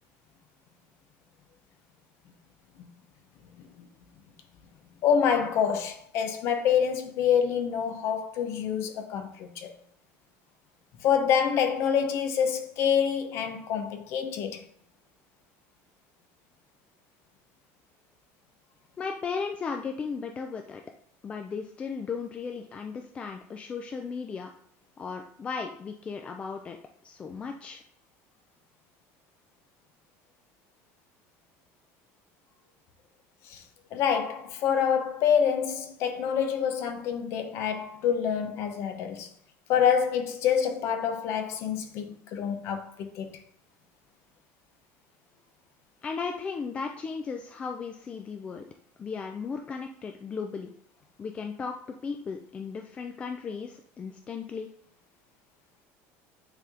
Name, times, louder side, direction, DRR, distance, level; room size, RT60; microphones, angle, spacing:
voice 1, 5.0-9.7 11.0-14.6 33.5-33.6 33.9-39.3 39.7-43.4, left 8 dB, 45° left, 0.9 m, -27 dB
voice 2, 19.0-20.8 21.2-24.5 25.0-26.8 27.0-27.8 46.0-48.6 49.0-50.7 51.2-51.7 52.0-54.7, left 5 dB, 20° left, 0.4 m, -36 dB
9.2 x 3.5 x 3.7 m
cardioid pair, 170°, 6 cm